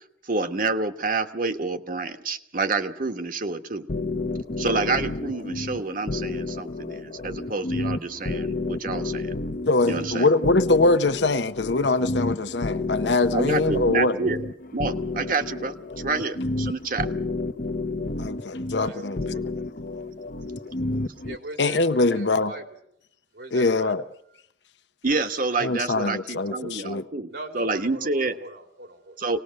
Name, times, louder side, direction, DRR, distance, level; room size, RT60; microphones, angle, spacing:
voice 1, 0.3-3.9 4.6-9.3 9.9-10.3 13.3-17.1 25.0-27.3 27.5-28.3 29.2-29.4, right 3 dB, 50° right, 1.3 m, -28 dB
sound 1, 3.9-21.4, left 2 dB, 50° left, 0.9 m, -30 dB
voice 2, 9.7-14.2 18.2-19.2 21.6-22.5 23.5-24.0 25.6-27.0, left 3 dB, 85° left, 0.9 m, -23 dB
voice 3, 18.8-19.4 21.2-22.8 23.3-23.9 27.3-29.2, right 1 dB, 80° right, 3.1 m, -40 dB
25.5 x 19.0 x 6.5 m
head